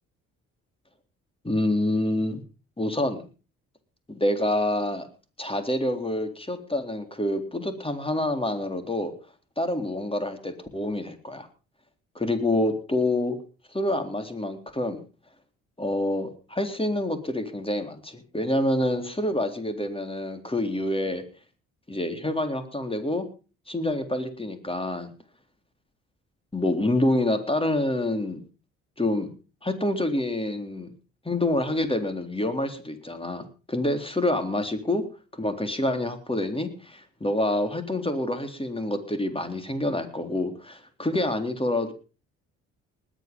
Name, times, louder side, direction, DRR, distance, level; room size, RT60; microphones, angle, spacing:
voice 1, 1.4-2.4 2.8-3.2 4.1-5.1 5.4-9.1 9.6-11.5 12.2-13.4 13.7-15.0 15.8-21.2 21.9-23.3 23.7-25.1 26.5-28.4 29.0-29.3 29.6-30.9 31.2-35.0 35.3-41.9, left 1 dB, 15° left, 7 dB, 3.9 m, -27 dB
20.0 x 9.1 x 5.4 m, 0.36 s
hypercardioid pair, 50°, 36 cm